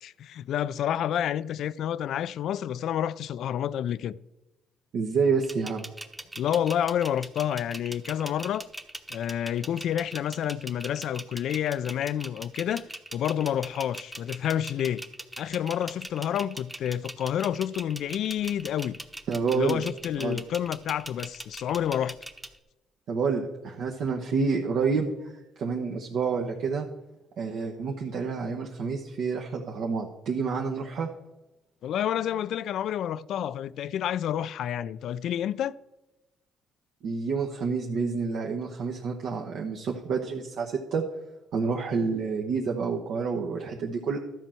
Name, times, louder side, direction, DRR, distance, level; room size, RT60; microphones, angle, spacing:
voice 1, 0.0-4.2 6.4-8.7 9.1-15.0 15.4-19.0 19.5-22.2 31.8-35.8, left 10 dB, 65° left, 0.3 m, -29 dB
voice 2, 4.9-5.9 19.3-19.8 20.2-20.4 23.1-26.9 27.4-31.1 37.0-41.0 41.5-44.2, right 5 dB, 65° right, 1.1 m, -28 dB
sound 1, 5.4-22.6, right 1 dB, 10° right, 0.9 m, -41 dB
12.5 x 4.5 x 7.6 m
supercardioid pair, 70°, 0 cm